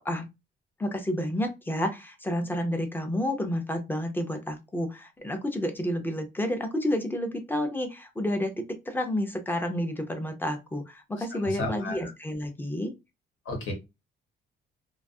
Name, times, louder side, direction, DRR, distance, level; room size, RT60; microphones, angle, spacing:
voice 1, 0.8-12.9, left 1 dB, 10° left, 6 dB, 0.4 m, -30 dB
voice 2, 11.4-12.1 13.4-13.7, left 2 dB, 85° left, 1 dB, 1.2 m, -33 dB
2.3 x 2.3 x 2.5 m, 0.23 s
cardioid pair, 155°, 20 cm